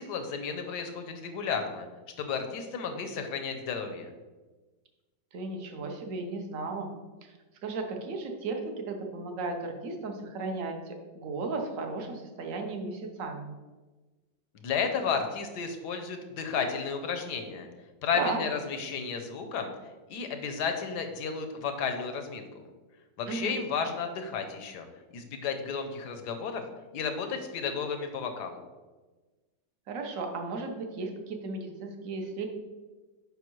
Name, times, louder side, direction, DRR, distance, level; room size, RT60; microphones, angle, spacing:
voice 1, 0.0-1.9 2.2-4.1 14.5-17.7 18.0-19.7 20.1-22.5 23.2-24.9 25.1-26.6 26.9-28.6, left 6 dB, 70° left, 6 dB, 1.2 m, -33 dB
voice 2, 5.3-6.9 7.2-7.3 7.6-13.5 18.1-18.4 23.3-23.6 29.9-32.5, right 3 dB, 55° right, 4 dB, 1.0 m, -35 dB
6.9 x 5.3 x 3.1 m, 1.2 s
omnidirectional pair, 2.1 m